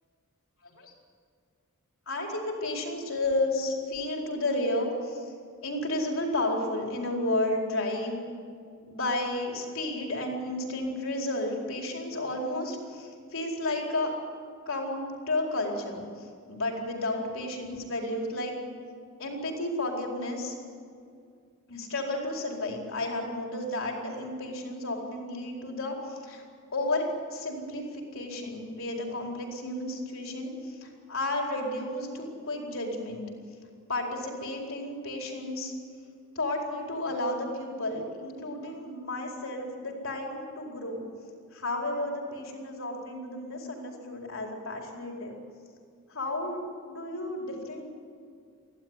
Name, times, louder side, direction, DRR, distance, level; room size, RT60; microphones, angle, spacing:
voice 1, 2.1-5.3 5.6-8.3 8.9-14.1 14.7-18.6 19.2-20.5 21.7-26.4 26.7-33.2 33.9-35.7 36.3-41.0 41.5-45.3 46.1-47.9, left 1 dB, 65° left, 0 dB, 4.5 m, -32 dB
24.0 x 16.0 x 9.9 m, 2.3 s
head